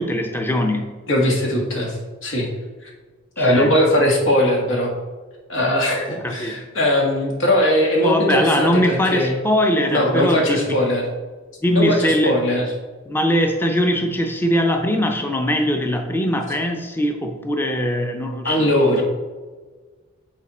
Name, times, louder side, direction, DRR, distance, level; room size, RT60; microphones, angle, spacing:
voice 1, 0.0-1.0 3.4-3.7 6.2-6.6 8.0-10.8 11.6-12.4 13.1-19.0, equal, 10° left, 4 dB, 0.5 m, -21 dB
voice 2, 1.1-2.5 2.8-2.9 3.4-4.9 5.5-9.4 9.9-11.0 11.7-12.7 18.4-19.0, left 1 dB, 85° left, -1 dB, 1.6 m, -19 dB
7.4 x 4.2 x 4.2 m, 1.4 s
head